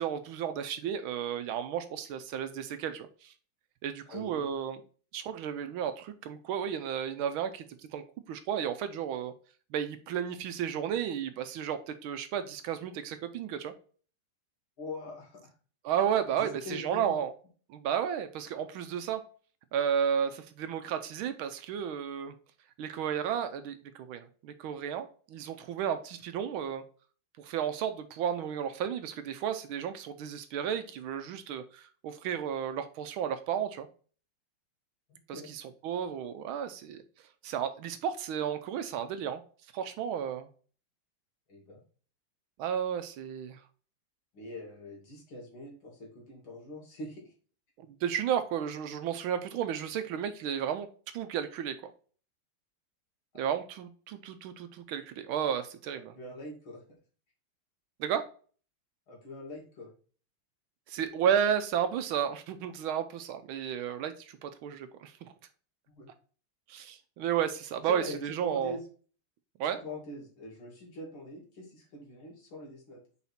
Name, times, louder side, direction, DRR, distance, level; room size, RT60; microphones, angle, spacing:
voice 1, 0.0-3.3 3.8-4.8 5.1-7.6 7.9-9.3 9.7-13.7 15.8-17.3 17.7-19.2 19.7-22.3 22.8-26.8 27.4-33.9 35.3-37.0 37.4-39.4 39.7-40.5 42.6-43.6 48.0-50.9 51.1-51.9 53.4-56.1 58.0-58.2 60.9-65.1 66.7-68.8 69.6-69.8, right 8 dB, 80° right, 9 dB, 1.4 m, -33 dB
voice 2, 4.1-4.5 14.8-15.5 16.3-17.2 35.3-35.5 41.5-41.8 44.3-47.3 56.1-56.8 59.1-59.9 65.9-66.1 67.9-68.8 69.6-73.0, left 1 dB, 65° left, -2 dB, 2.9 m, -43 dB
5.6 x 4.1 x 4.2 m, 0.41 s
omnidirectional pair, 2.4 m